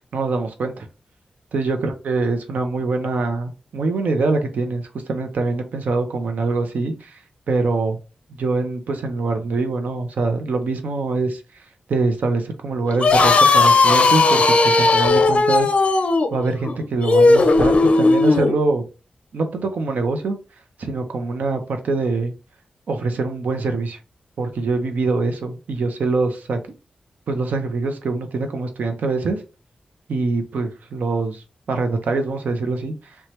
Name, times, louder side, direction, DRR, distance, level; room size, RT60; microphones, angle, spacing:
voice 1, 0.1-0.9 1.5-7.2 7.5-8.0 8.4-11.4 11.9-15.7 16.3-18.8 19.3-20.4 20.8-22.3 22.9-24.0 24.4-26.6 27.3-29.4 30.1-32.9, right 3 dB, 80° right, 0.6 m, -24 dB
sound 1, 12.9-18.5, left 3 dB, 50° left, 0.4 m, -15 dB
3.0 x 2.2 x 2.8 m
wide cardioid pair, 95°, 3 cm